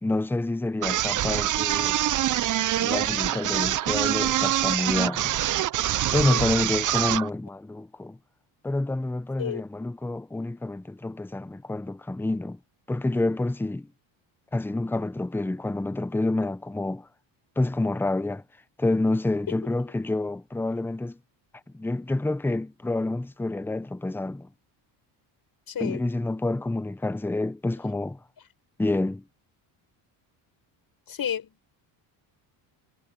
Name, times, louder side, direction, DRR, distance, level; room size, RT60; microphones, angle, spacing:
voice 1, 0.0-2.0 2.8-5.3 6.1-8.2 8.6-12.6 12.9-13.9 14.5-17.1 17.6-18.4 18.8-21.2 21.7-24.5 25.8-28.2 28.8-29.2, left 2 dB, 5° left, 0.8 m, -28 dB
sound 1, 0.8-7.3, right 13 dB, 40° right, 0.6 m, -25 dB
voice 2, 6.1-6.5 9.4-9.6 25.7-26.0 31.1-31.5, left 8 dB, 45° left, 6.2 m, -31 dB
cardioid pair, 105°, 49 cm